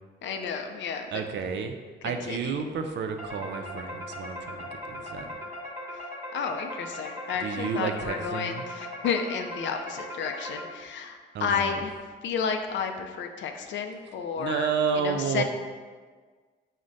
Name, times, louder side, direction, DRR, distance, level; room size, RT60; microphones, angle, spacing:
voice 1, 0.2-1.1 2.0-2.6 5.9-6.0 6.3-11.9 12.2-15.4, left 6 dB, 70° left, 5 dB, 0.5 m, -31 dB
voice 2, 1.1-1.8 2.0-5.3 7.4-8.6 11.3-11.7 14.4-15.4, right 6 dB, 65° right, 6 dB, 0.4 m, -31 dB
sound 1, 3.2-11.0, left 1 dB, 10° right, 1.0 m, -39 dB
4.9 x 2.1 x 3.9 m, 1.5 s
cardioid pair, 90°, 20 cm